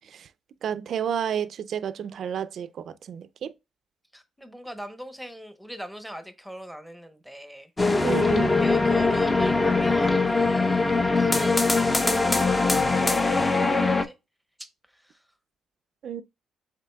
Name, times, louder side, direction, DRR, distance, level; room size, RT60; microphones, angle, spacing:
voice 1, 0.6-3.5 8.0-8.6 16.0-16.2, right 8 dB, 60° right, 0.4 m, -30 dB
voice 2, 4.1-8.2 8.6-14.1 14.9-15.2, equal, ahead, 0.8 m, -41 dB
sound 1, 7.8-14.0, left 3 dB, 20° left, 0.6 m, -22 dB
7.5 x 3.0 x 2.2 m
cardioid pair, 90°, 0 cm